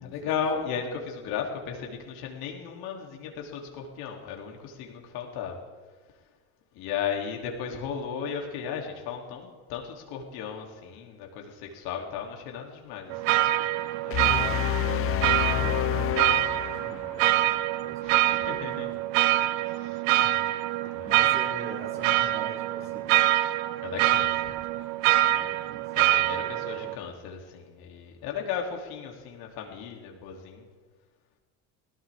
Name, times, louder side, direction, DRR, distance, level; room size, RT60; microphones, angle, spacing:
voice 1, 0.0-5.6 6.7-14.8 18.0-18.9 19.7-20.0 20.8-21.1 23.8-24.5 25.9-30.7, left 7 dB, 70° left, 1 dB, 3.1 m, -36 dB
sound 1, 13.1-27.0, right 15 dB, 75° right, 0.7 m, -25 dB
sound 2, 14.1-17.3, left 14 dB, 35° left, 0.4 m, -28 dB
voice 2, 15.5-17.5 17.8-18.7 20.2-23.3 25.2-26.0 26.5-27.0, right 2 dB, 35° right, -1 dB, 5.8 m, -44 dB
21.5 x 17.0 x 3.6 m, 1.4 s
supercardioid pair, 80°, 38 cm